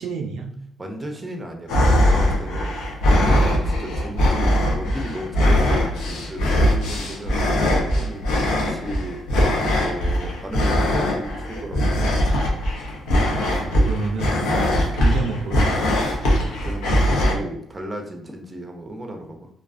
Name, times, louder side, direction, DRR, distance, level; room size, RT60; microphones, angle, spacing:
voice 1, 0.0-0.6 13.1-14.7 14.9-16.2, right 3 dB, 75° right, 3 dB, 0.4 m, -29 dB
voice 2, 0.8-2.7 3.2-7.4 7.7-9.2 9.8-12.2 16.4-19.5, right 1 dB, 20° right, 3 dB, 0.5 m, -34 dB
sound 1, 1.7-17.3, equal, 85° left, 0.6 m, -20 dB
2.4 x 2.3 x 2.4 m, 0.70 s
cardioid pair, 90°, 0 cm